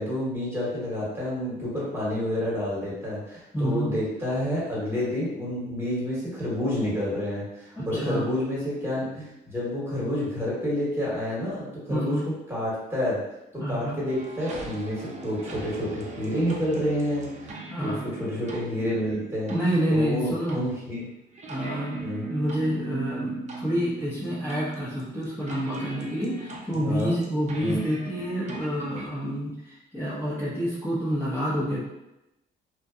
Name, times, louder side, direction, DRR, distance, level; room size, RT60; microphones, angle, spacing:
voice 1, 0.0-12.1 12.5-13.2 13.5-19.5 19.9-21.1 22.0-22.2 26.7-27.1 27.6-27.8, left 1 dB, 10° right, -7 dB, 1.2 m, -29 dB
voice 2, 3.5-3.9 7.8-8.3 11.9-12.3 13.6-14.0 17.7-18.1 19.5-20.6 21.5-31.8, equal, 10° left, -11 dB, 0.7 m, -28 dB
sound 1, 14.1-29.1, right 2 dB, 35° right, 0.5 m, -40 dB
2.7 x 2.1 x 2.4 m, 0.92 s
cardioid pair, 90°, 20 cm